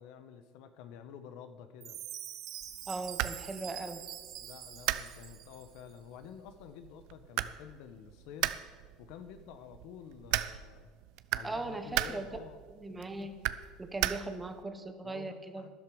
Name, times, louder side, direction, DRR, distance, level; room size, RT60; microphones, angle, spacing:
voice 1, 0.0-2.0 4.4-8.6 9.0-10.9 11.3-12.6 15.0-15.7, left 8 dB, 70° left, 10 dB, 1.0 m, -50 dB
Chime, 1.8-5.8, right 11 dB, 55° right, 1.2 m, -45 dB
sound 1, 2.6-14.6, right 15 dB, 70° right, 0.6 m, -38 dB
voice 2, 2.9-4.0 11.4-12.3 12.7-13.4 13.8-15.7, right 2 dB, 15° right, 8 dB, 1.1 m, -39 dB
12.5 x 11.0 x 5.1 m, 1.5 s
supercardioid pair, 120°, 0 cm